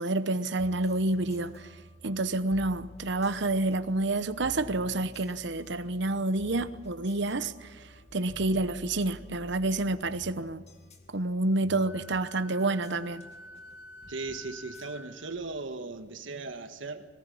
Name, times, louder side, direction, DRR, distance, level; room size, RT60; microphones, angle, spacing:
voice 1, 0.0-1.7 2.0-10.6 11.1-13.3, right 2 dB, 65° right, 1.0 m, -29 dB
sound 1, 0.6-15.8, equal, 35° left, 2.3 m, -51 dB
Wind instrument woodwind instrument, 11.8-15.4, left 1 dB, 85° left, 2.1 m, -48 dB
voice 2, 14.1-17.1, right 3 dB, 85° right, 1.6 m, -38 dB
21.5 x 19.0 x 8.6 m
head